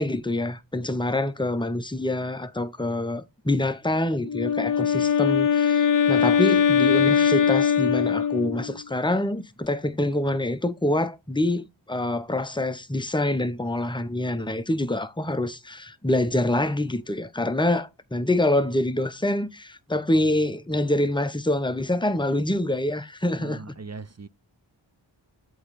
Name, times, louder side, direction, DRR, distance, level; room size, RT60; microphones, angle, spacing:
voice 1, 0.0-23.7, left 1 dB, 10° left, 0.8 m, -26 dB
Wind instrument woodwind instrument, 4.2-8.8, left 7 dB, 45° left, 0.5 m, -21 dB
voice 2, 23.4-24.3, right 4 dB, 35° right, 0.5 m, -39 dB
8.0 x 3.1 x 4.1 m
wide cardioid pair, 40°, 47 cm